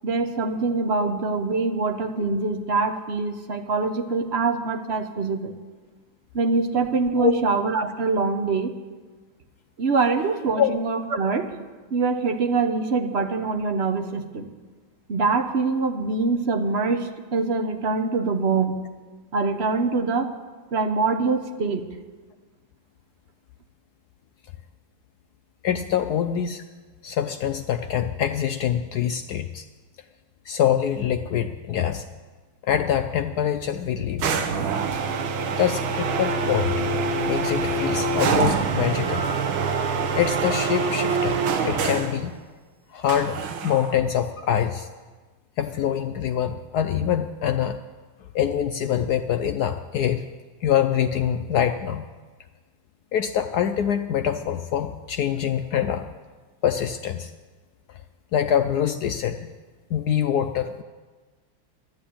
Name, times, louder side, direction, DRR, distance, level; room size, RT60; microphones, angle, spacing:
voice 1, 0.0-5.5 6.3-8.7 9.8-11.5 11.9-14.5 15.1-18.8 19.3-20.3 20.7-21.9, right 4 dB, 50° right, 6 dB, 0.8 m, -24 dB
voice 2, 25.6-26.6 27.0-29.6 30.5-32.0 32.6-34.4 35.5-36.8 37.3-39.2 40.1-41.4 41.6-42.3 42.9-44.9 45.6-47.8 48.3-50.2 50.6-52.1 53.1-56.0 56.6-57.3 57.9-58.0 58.3-59.5 59.9-60.8, left 9 dB, 80° left, 8 dB, 0.8 m, -24 dB
sound 1, 34.2-42.2 43.1-44.0, right 4 dB, 75° right, 1.8 m, -25 dB
12.0 x 11.0 x 8.6 m, 1.3 s
omnidirectional pair, 2.3 m